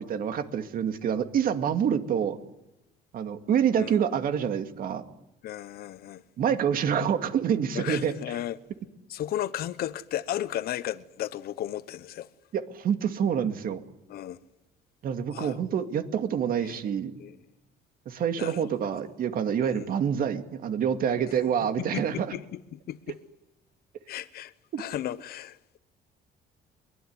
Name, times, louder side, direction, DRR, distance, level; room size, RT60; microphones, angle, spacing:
voice 1, 0.0-2.4 3.1-5.1 6.4-8.4 12.5-13.8 15.0-17.2 18.1-22.3 24.7-24.8, right 8 dB, 60° right, 2.3 m, -27 dB
voice 2, 5.4-6.2 7.7-8.6 9.1-12.3 14.1-14.4 15.3-15.5 16.6-16.8 17.2-17.4 18.4-18.7 19.7-19.8 21.8-23.2 24.1-24.5 24.8-25.8, left 12 dB, 65° left, 1.0 m, -34 dB
23.0 x 21.0 x 9.6 m
cardioid pair, 110°, 17 cm